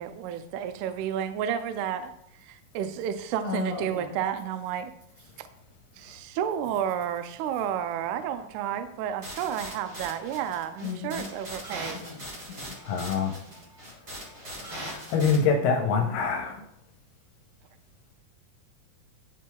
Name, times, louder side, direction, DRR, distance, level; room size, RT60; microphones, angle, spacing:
voice 1, 0.0-2.1 2.4-4.9 5.4-5.5 6.0-12.0, right 9 dB, 85° right, 10 dB, 1.8 m, -31 dB
voice 2, 3.4-4.2 10.8-11.3 11.9-12.8 15.2-15.6, left 5 dB, 55° left, -6 dB, 2.0 m, -36 dB
sound 1, 9.2-15.4, equal, 40° right, 0.9 m, -40 dB
voice 3, 12.8-13.3 14.4-16.6, left 5 dB, 80° left, 2 dB, 2.2 m, -26 dB
10.0 x 4.6 x 2.3 m, 0.77 s
omnidirectional pair, 4.0 m